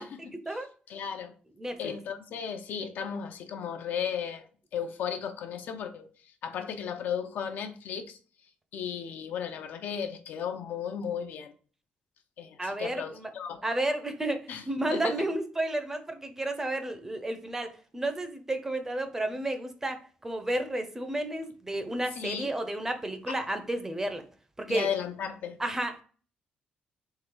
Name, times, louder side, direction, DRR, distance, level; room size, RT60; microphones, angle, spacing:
voice 1, 0.0-0.6 0.9-1.3 1.8-6.1 6.4-8.2 8.7-11.5 12.4-13.6 14.5-14.6 14.9-15.2 22.2-22.5 23.3-23.4 24.7-25.6, left 7 dB, 70° left, 0.7 m, -35 dB
voice 2, 1.6-1.9 12.6-13.3 13.6-24.2 24.6-24.9 25.6-26.0, right 1 dB, 15° right, 0.6 m, -32 dB
3.8 x 3.1 x 4.5 m
cardioid pair, 125°, 3 cm